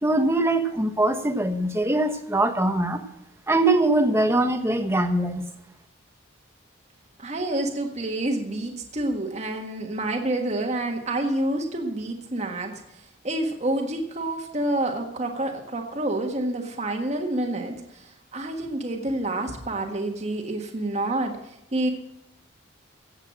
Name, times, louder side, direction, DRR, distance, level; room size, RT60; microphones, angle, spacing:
voice 1, 0.0-3.0 3.5-5.4, right 2 dB, 15° right, 7 dB, 1.1 m, -22 dB
voice 2, 7.2-21.9, right 1 dB, 35° right, 2 dB, 1.6 m, -28 dB
15.5 x 8.1 x 5.9 m, 0.83 s
head